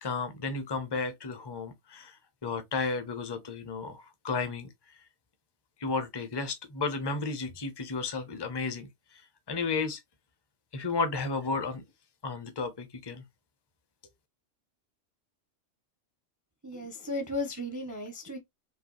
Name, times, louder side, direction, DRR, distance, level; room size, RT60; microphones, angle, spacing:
voice 1, 0.0-2.2 2.4-4.7 5.8-10.0 10.7-11.8 12.2-13.2, left 4 dB, 20° left, 0.7 m, -33 dB
voice 2, 16.6-18.4, left 2 dB, 20° right, 0.6 m, -35 dB
4.8 x 3.1 x 3.1 m
omnidirectional pair, 1.5 m